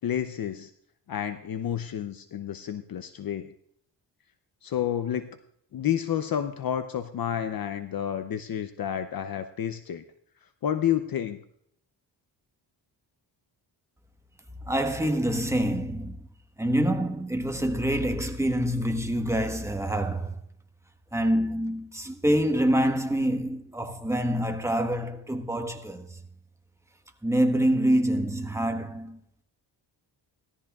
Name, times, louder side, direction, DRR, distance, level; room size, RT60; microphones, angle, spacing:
voice 1, 0.0-0.7 1.1-3.5 4.6-5.3 5.7-10.0 10.6-11.4, left 10 dB, 50° left, 0.7 m, -30 dB
voice 2, 14.6-16.2 16.6-20.4 21.1-26.2 27.2-29.2, right 1 dB, 5° right, 1.2 m, -26 dB
17.5 x 13.5 x 2.4 m
cardioid pair, 85°, 44 cm